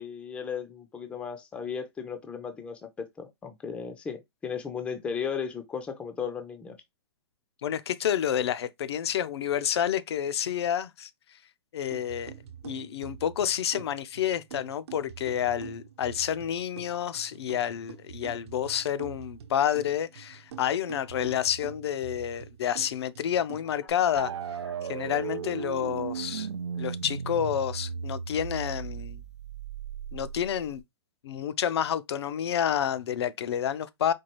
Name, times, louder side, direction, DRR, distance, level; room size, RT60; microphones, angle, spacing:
voice 1, 0.0-6.8, left 6 dB, 10° left, 0.4 m, -35 dB
voice 2, 7.6-11.1 11.7-12.3 12.6-24.3 24.8-26.5 26.8-29.2 30.1-30.8 31.2-34.1, left 9 dB, 70° left, 0.5 m, -29 dB
sound 1, 11.9-23.9, right 9 dB, 70° right, 0.9 m, -46 dB
sound 2, 24.2-30.8, right 7 dB, 85° right, 0.4 m, -36 dB
4.5 x 2.3 x 3.0 m
hypercardioid pair, 145°, 14 cm